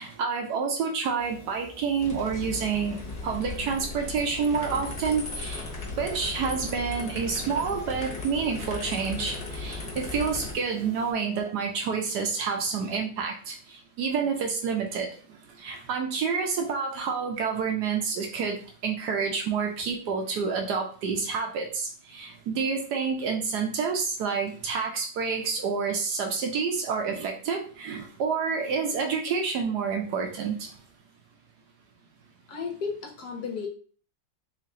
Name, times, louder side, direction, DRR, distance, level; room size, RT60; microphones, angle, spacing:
voice 1, 0.0-5.7 6.0-13.5 14.0-15.1 15.6-30.7, right 5 dB, 75° right, 3 dB, 0.9 m, -28 dB
sound 1, 1.2-11.1, right 1 dB, 20° right, 1.1 m, -50 dB
sound 2, 2.0-10.5, left 3 dB, 45° left, 0.5 m, -37 dB
voice 2, 32.5-33.7, left 5 dB, 65° left, 3 dB, 1.0 m, -34 dB
3.3 x 3.2 x 3.7 m, 0.42 s
omnidirectional pair, 2.4 m